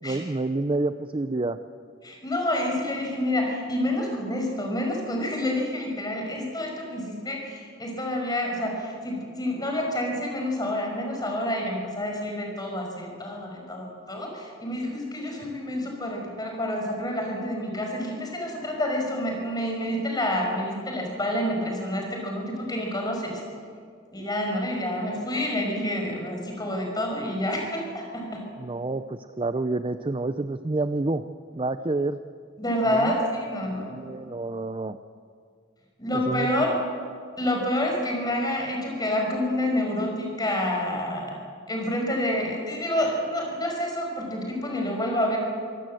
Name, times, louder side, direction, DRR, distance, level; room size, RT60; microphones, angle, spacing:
voice 1, 0.0-1.6 28.6-31.2 31.5-32.2 32.9-33.1 33.9-35.0 36.1-36.5, right 2 dB, 25° right, 10 dB, 0.6 m, -28 dB
voice 2, 2.0-23.4 24.1-28.4 32.6-34.1 36.0-36.7 37.4-41.4 41.7-45.4, left 1 dB, 20° left, 1 dB, 5.6 m, -28 dB
25.5 x 17.0 x 7.7 m, 2.1 s
head